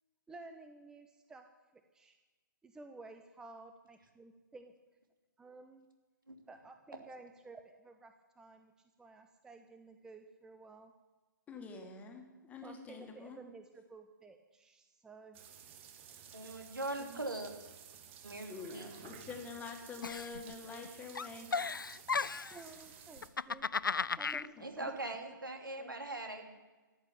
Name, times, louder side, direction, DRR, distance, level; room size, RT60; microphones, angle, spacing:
voice 1, 0.3-1.4 1.9-2.1 2.6-4.7 5.4-5.9 6.5-8.7 9.0-10.9 12.6-15.4 17.0-17.2 21.5-21.6 22.1-23.7 24.2-25.0 25.8-25.9, right 3 dB, 5° right, 6 dB, 0.6 m, -54 dB
voice 2, 11.5-13.4 18.5-21.5 24.3-24.5, left 4 dB, 15° left, 3 dB, 1.8 m, -46 dB
sound 1, 15.3-23.3, right 8 dB, 35° right, 1.6 m, -54 dB
voice 3, 16.3-17.5 18.2-18.9 24.6-26.5, right 2 dB, 75° right, 4 dB, 2.7 m, -41 dB
Giggle, 20.0-20.9 21.1-22.6 23.2-24.5, left 5 dB, 80° left, 0.4 m, -35 dB
13.5 x 8.7 x 8.7 m, 1.2 s
figure-of-eight pair, 125°, 11 cm